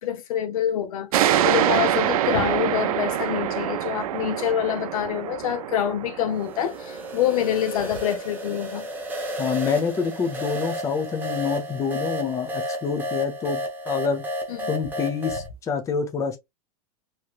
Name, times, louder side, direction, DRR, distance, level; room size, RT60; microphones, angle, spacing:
voice 1, 0.0-8.9 14.5-14.7, left 10 dB, 80° left, 0.8 m, -26 dB
sound 1, 1.1-8.3, right 11 dB, 85° right, 0.5 m, -25 dB
sound 2, 6.4-15.5, equal, 10° right, 0.8 m, -32 dB
voice 2, 9.4-14.2 14.7-16.4, left 6 dB, 15° left, 0.6 m, -27 dB
3.0 x 3.0 x 2.3 m
supercardioid pair, 150°, 18 cm